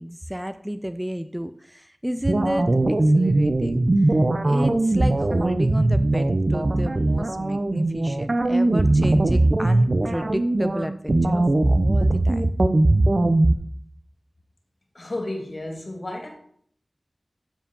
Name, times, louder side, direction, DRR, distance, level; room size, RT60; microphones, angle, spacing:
voice 1, 0.0-12.7, equal, 5° right, 11 dB, 0.5 m, -31 dB
sound 1, 2.2-13.5, right 2 dB, 55° right, 0.8 m, -20 dB
voice 2, 14.9-16.3, left 1 dB, 55° left, 2 dB, 2.6 m, -32 dB
7.5 x 7.4 x 5.4 m, 0.62 s
wide cardioid pair, 55°, 0 cm